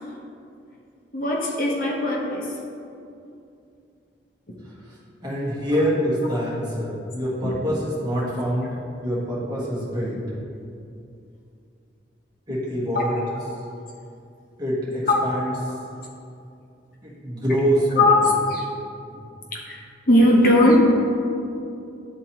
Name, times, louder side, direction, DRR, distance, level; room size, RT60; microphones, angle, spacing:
voice 1, 1.1-2.6 4.5-4.6 7.4-7.5 12.9-13.0 13.5-13.6 15.1-15.2 17.9-18.6 19.5-19.8 20.1-20.8, left 1 dB, 50° left, -3 dB, 0.9 m, -19 dB
voice 2, 4.6-8.7 9.0-10.2 12.5-13.2 14.6-15.7 17.0-18.3 19.1-19.2, equal, 20° right, -7 dB, 1.5 m, -25 dB
11.0 x 3.8 x 3.0 m, 2.6 s
head